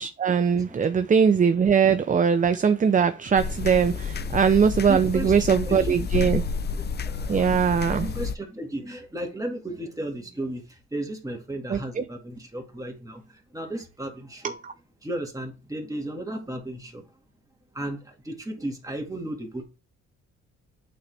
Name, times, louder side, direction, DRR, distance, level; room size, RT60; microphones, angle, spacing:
voice 1, 0.0-6.4 7.3-8.1 11.7-12.0 14.4-14.7, right 6 dB, 25° right, 0.6 m, -21 dB
sound 1, 3.3-8.3, left 5 dB, 35° left, 0.5 m, -30 dB
voice 2, 4.9-5.3 5.7-6.0 6.8-7.6 7.8-14.5 15.0-17.0 17.7-19.6, right 1 dB, 10° right, 2.1 m, -34 dB
8.6 x 4.0 x 3.4 m
cardioid pair, 90°, 30 cm